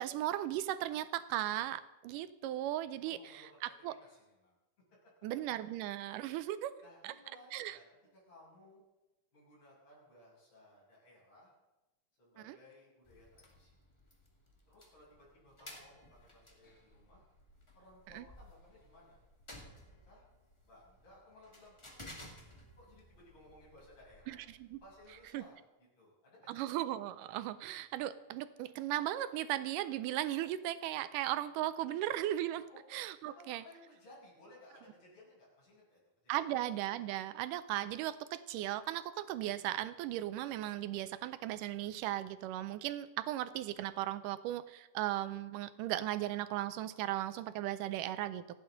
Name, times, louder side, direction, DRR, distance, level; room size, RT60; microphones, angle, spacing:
voice 1, 0.0-3.4 3.8-4.0 5.2-6.7 7.0-7.1 7.5-7.8 12.4-12.6 18.1-18.2 24.3-24.8 25.3-25.4 26.5-33.6 36.3-48.4, right 13 dB, 80° right, 13 dB, 2.1 m, -37 dB
voice 2, 3.0-4.5 4.9-5.0 6.8-7.8 8.1-8.8 9.3-11.5 12.2-13.8 14.7-17.2 17.7-19.2 19.5-20.3 20.6-21.8 22.3-22.4 22.8-24.4 24.8-26.7 32.7-32.8 33.2-36.5, left 1 dB, 50° left, -6 dB, 7.8 m, -60 dB
sound 1, 13.0-25.4, left 1 dB, 35° left, 0.4 m, -57 dB
27.5 x 9.4 x 3.9 m, 1.0 s
omnidirectional pair, 3.9 m